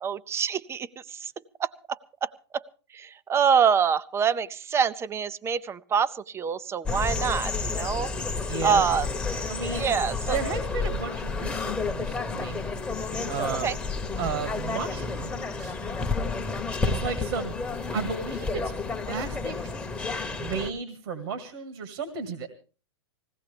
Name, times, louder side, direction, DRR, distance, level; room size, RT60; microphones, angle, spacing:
voice 1, 0.0-1.3 1.6-2.6 2.9-8.1 8.6-9.1 9.7-10.4 13.6-13.7, right 7 dB, 15° right, 15 dB, 0.6 m, -26 dB
sound 1, 6.9-20.7, left 4 dB, 10° left, 1.2 m, -30 dB
voice 2, 8.5-8.8 9.5-9.9 10.3-12.6 13.3-13.8 14.2-15.8 16.8-17.5 17.9-18.7 19.0-19.6 20.4-22.5, right 5 dB, 65° right, 9 dB, 2.0 m, -33 dB
20.0 x 17.0 x 3.4 m, 0.36 s
hypercardioid pair, 115°, 15 cm